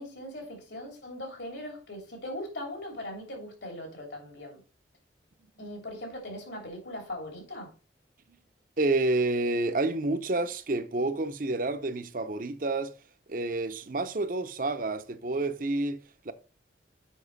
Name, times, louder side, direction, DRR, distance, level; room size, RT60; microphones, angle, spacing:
voice 1, 0.0-4.6 5.6-7.7, left 1 dB, 75° left, 3.1 m, -40 dB
voice 2, 8.8-12.9 13.3-16.3, right 2 dB, 45° right, 0.7 m, -29 dB
7.2 x 6.0 x 4.0 m
head